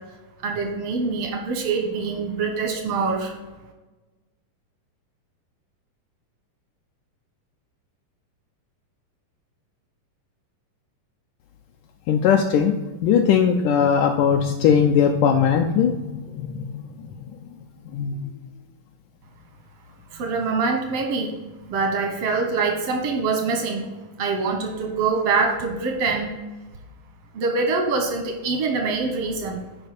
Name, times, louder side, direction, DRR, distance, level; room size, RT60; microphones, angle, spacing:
voice 1, 0.4-3.3 20.1-21.4 21.7-23.9 24.2-26.4 27.3-29.6, right 4 dB, 80° right, 3 dB, 1.4 m, -24 dB
voice 2, 12.1-12.8 13.0-16.1 16.4-16.7 17.9-18.3, left 7 dB, 80° left, 3 dB, 1.9 m, -19 dB
10.5 x 4.9 x 4.1 m, 1.2 s
omnidirectional pair, 4.0 m